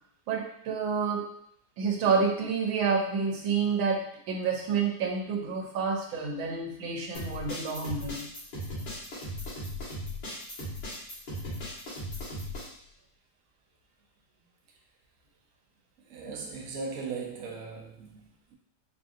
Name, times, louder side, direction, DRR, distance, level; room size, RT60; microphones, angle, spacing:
voice 1, 0.3-1.3 1.8-8.3, right 5 dB, 90° right, 0 dB, 1.5 m, -29 dB
sound 1, 7.1-12.7, left 1 dB, 65° left, 2.1 m, -37 dB
voice 2, 16.1-18.5, right 4 dB, 60° right, -1 dB, 0.9 m, -38 dB
5.2 x 2.6 x 2.5 m, 0.71 s
omnidirectional pair, 2.1 m